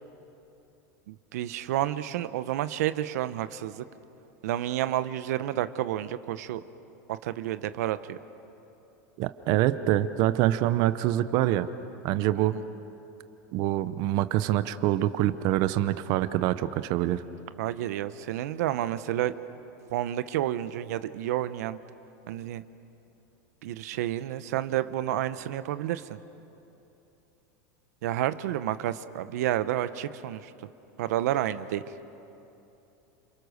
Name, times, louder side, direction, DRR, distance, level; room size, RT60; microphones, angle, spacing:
voice 1, 1.1-3.8 4.4-6.6 7.1-8.2 12.4-12.6 17.6-19.3 19.9-21.8 22.3-22.6 23.6-26.2 28.0-30.5 31.0-31.8, right 13 dB, 75° right, 13 dB, 0.9 m, -30 dB
voice 2, 9.2-11.7 12.0-12.6 13.5-17.2, right 14 dB, 50° right, 13 dB, 0.8 m, -25 dB
29.5 x 27.5 x 6.6 m, 2.9 s
supercardioid pair, 145°, 9 cm